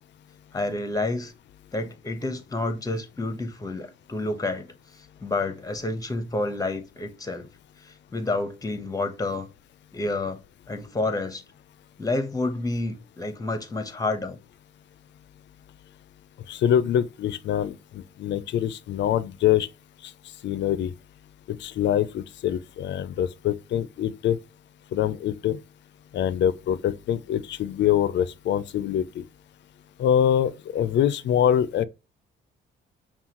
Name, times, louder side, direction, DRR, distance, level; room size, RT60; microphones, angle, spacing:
voice 1, 0.5-1.3 1.7-4.7 5.2-7.5 7.8-9.5 9.9-10.4 10.7-11.4 12.0-14.4, left 2 dB, 20° left, 0.9 m, -29 dB
voice 2, 16.5-19.7 20.0-20.1 20.4-20.9 21.5-24.4 24.9-25.6 26.1-29.3 30.0-31.8, left 10 dB, 65° left, 0.5 m, -24 dB
5.6 x 2.4 x 2.9 m
cardioid pair, 90°, 20 cm